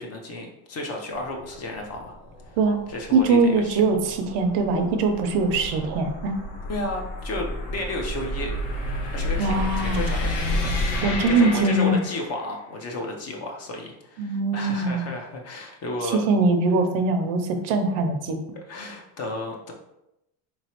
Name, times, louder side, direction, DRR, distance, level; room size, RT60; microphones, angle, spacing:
voice 1, 0.0-2.1 2.5-2.6 2.9-3.8 6.7-8.5 9.0-10.6 11.3-16.2 18.7-19.7, left 2 dB, 35° left, 1 dB, 0.5 m, -33 dB
sound 1, 1.1-12.5, left 1 dB, 60° left, 1.1 m, -31 dB
voice 2, 3.1-6.3 9.4-10.1 11.0-12.0 14.2-15.1 16.0-18.4, right 3 dB, 65° right, 6 dB, 0.7 m, -22 dB
3.8 x 3.0 x 2.9 m, 0.86 s
cardioid pair, 135°, 48 cm